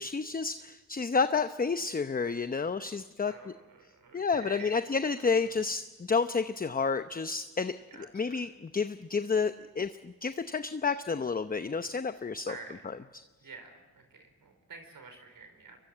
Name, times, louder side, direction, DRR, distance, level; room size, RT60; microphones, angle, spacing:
voice 1, 0.0-3.5 4.1-12.6 12.8-13.2, left 5 dB, 20° left, 10 dB, 0.8 m, -30 dB
voice 2, 3.9-4.8 5.2-5.3 7.9-8.1 12.5-12.8 13.4-15.8, right 4 dB, 60° right, 6 dB, 4.5 m, -48 dB
23.5 x 22.5 x 7.9 m, 1.3 s
cardioid pair, 75°, 39 cm